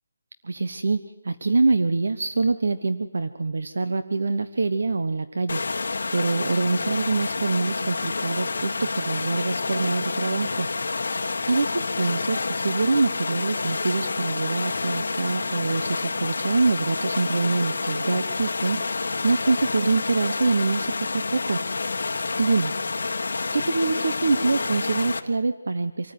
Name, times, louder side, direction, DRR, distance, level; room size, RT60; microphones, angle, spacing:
voice 1, 0.4-5.6 6.1-10.7 11.4-18.8 19.2-21.6 22.4-22.7 23.5-26.1, right 3 dB, 60° right, 10 dB, 1.0 m, -25 dB
sound 1, 5.5-25.2, left 3 dB, 50° left, 1.7 m, -29 dB
26.0 x 14.5 x 9.5 m, 0.99 s
hypercardioid pair, 180°, 0 cm